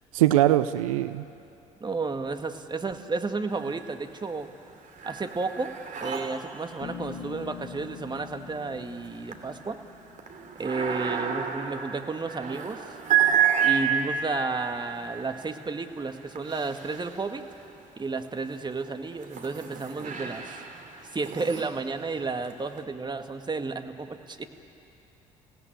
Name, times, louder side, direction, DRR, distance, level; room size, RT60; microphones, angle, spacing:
voice 1, 0.1-1.2, right 14 dB, 85° right, 13 dB, 0.5 m, -21 dB
voice 2, 1.8-4.5 5.0-5.7 6.0-9.8 10.6-12.8 13.6-17.5 18.0-20.5 21.1-24.5, right 3 dB, 25° right, 6 dB, 1.9 m, -32 dB
sound 1, 3.5-4.2 4.5-17.7 18.3-22.8, right 8 dB, 50° right, 2.9 m, -31 dB
Bass guitar, 6.8-10.9, left 8 dB, 60° left, 2.7 m, -44 dB
28.5 x 17.5 x 9.4 m, 2.8 s
hypercardioid pair, 55°, 17 cm